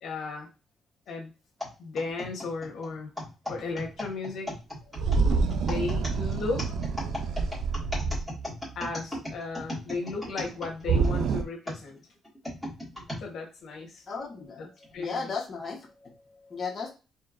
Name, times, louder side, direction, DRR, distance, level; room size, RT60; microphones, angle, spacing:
voice 1, 0.0-0.5 1.1-1.3 1.8-3.1 3.5-4.5 5.5-6.6 8.7-12.0 13.2-14.0 14.6-14.7 14.9-15.3, left 3 dB, 70° left, 1 dB, 1.2 m, -35 dB
sound 1, 1.6-11.1 11.7-13.2 13.9-14.0 14.8-15.1, left 1 dB, 5° right, 1.9 m, -37 dB
sound 2, 5.0-8.8 10.8-11.4, right 5 dB, 75° right, 0.4 m, -27 dB
voice 2, 14.1-14.7 15.0-16.1 16.5-16.9, left 4 dB, 40° left, -1 dB, 1.2 m, -35 dB
4.4 x 2.9 x 2.5 m, 0.30 s
cardioid pair, 90°, 0 cm